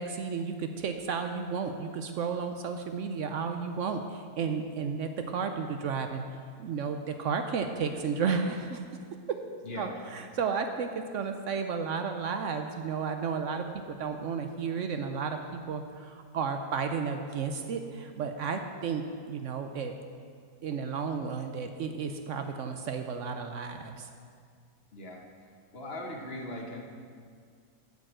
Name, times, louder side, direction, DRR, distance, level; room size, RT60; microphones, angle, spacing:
voice 1, 0.0-6.2 6.6-8.8 9.8-19.9 20.6-24.1, right 5 dB, 65° right, 6 dB, 0.8 m, -33 dB
voice 2, 9.6-10.0 24.9-25.3 25.7-26.8, left 1 dB, 45° left, 1 dB, 1.2 m, -39 dB
8.3 x 6.4 x 7.8 m, 2.1 s
omnidirectional pair, 1.7 m